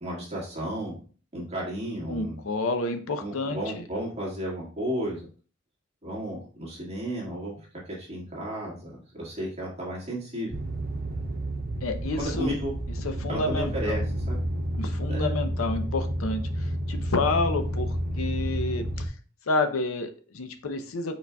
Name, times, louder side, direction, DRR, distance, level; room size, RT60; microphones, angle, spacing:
voice 1, 0.0-1.0 1.3-2.4 3.2-5.3 6.0-7.6 7.9-10.6 12.1-12.7 13.3-14.0 14.3-14.4 15.1-15.3, equal, 30° right, -5 dB, 1.7 m, -33 dB
voice 2, 2.1-3.8 11.8-12.5 13.0-14.0 14.7-19.1 19.5-21.2, left 3 dB, 85° left, 7 dB, 0.6 m, -29 dB
sound 1, 10.5-19.1, equal, 50° right, 0.5 m, -30 dB
4.9 x 4.8 x 2.3 m, 0.39 s
head